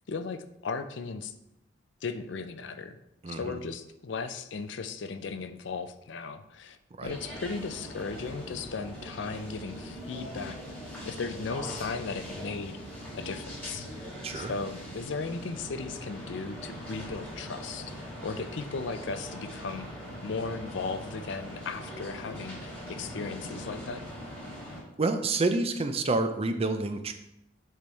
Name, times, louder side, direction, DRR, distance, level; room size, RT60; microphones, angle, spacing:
voice 1, 0.1-1.3 2.0-3.0 3.3-10.6 11.0-12.8 13.1-14.1 14.3-19.9 20.2-24.0, left 4 dB, 65° left, 10 dB, 0.5 m, -36 dB
voice 2, 3.2-3.6 7.0-7.2 14.2-14.5 25.0-27.1, right 3 dB, 30° right, 8 dB, 0.5 m, -28 dB
sound 1, 7.0-24.8, equal, 10° left, 2.4 m, -41 dB
7.6 x 3.4 x 4.6 m, 0.84 s
head